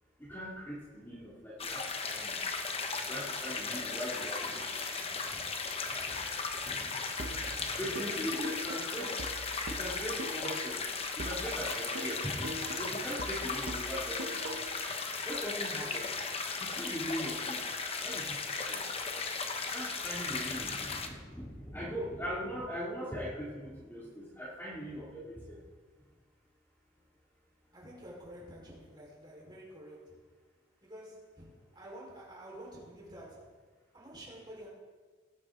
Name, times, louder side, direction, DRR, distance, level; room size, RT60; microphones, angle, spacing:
voice 1, 0.2-2.4 3.0-5.0 5.3-5.4 6.0-6.2 6.7-7.0 7.3-9.1 9.7-10.8 11.2-12.5 12.8-14.4 15.2-16.1 16.6-17.6 18.0-18.8 19.7-25.6, equal, 10° left, -8 dB, 2.6 m, -40 dB
sound 1, 1.6-21.1, left 4 dB, 30° left, 1.0 m, -36 dB
voice 2, 7.2-8.2 27.7-30.2 30.8-33.6 33.9-34.7, right 1 dB, 25° right, -4 dB, 4.4 m, -50 dB
sound 2, 7.2-10.9 11.2-14.9, right 1 dB, 60° right, 0.9 m, -43 dB
19.0 x 10.0 x 3.8 m, 1.4 s
head